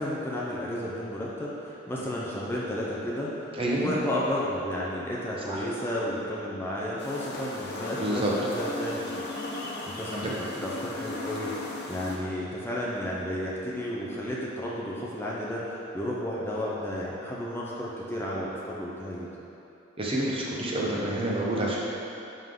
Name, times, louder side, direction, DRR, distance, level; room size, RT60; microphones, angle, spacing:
voice 1, 0.0-9.6 9.9-19.3, left 1 dB, 10° left, -6 dB, 0.7 m, -32 dB
voice 2, 3.6-3.9 5.5-5.6 8.0-8.3 10.1-10.2 20.0-21.8, right 1 dB, 25° right, -4 dB, 0.9 m, -28 dB
sound 1, 7.0-12.2, left 2 dB, 55° left, 0.8 m, -36 dB
10.5 x 3.8 x 3.8 m, 2.9 s
head